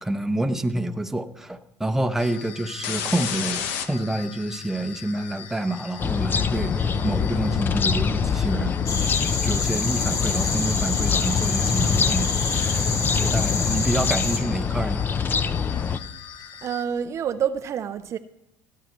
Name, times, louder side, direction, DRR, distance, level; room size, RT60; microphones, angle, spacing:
voice 1, 0.0-8.8 9.4-12.4 12.7-12.9 13.2-15.1, right 1 dB, 5° right, 0.8 m, -28 dB
sound 1, 2.2-16.8, left 8 dB, 80° left, 1.0 m, -38 dB
sound 2, 6.0-16.0, left 6 dB, 30° left, 0.5 m, -24 dB
sound 3, 8.9-14.4, left 4 dB, 45° left, 1.9 m, -28 dB
voice 2, 16.6-18.2, right 8 dB, 45° right, 0.5 m, -27 dB
17.5 x 9.2 x 3.1 m
supercardioid pair, 95°, 7 cm